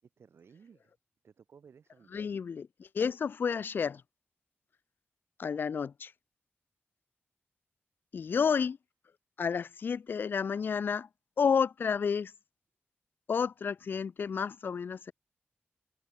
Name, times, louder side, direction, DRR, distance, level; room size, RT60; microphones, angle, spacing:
voice 1, 0.0-0.9 1.2-2.4 8.3-8.5, right 6 dB, 90° right, 5.4 m, -58 dB
voice 2, 2.1-2.7 2.9-4.0 5.4-6.1 8.1-8.8 9.4-11.1 11.4-12.3 13.3-15.1, left 6 dB, 55° left, 0.3 m, -30 dB
wide cardioid pair, 175°, 4 cm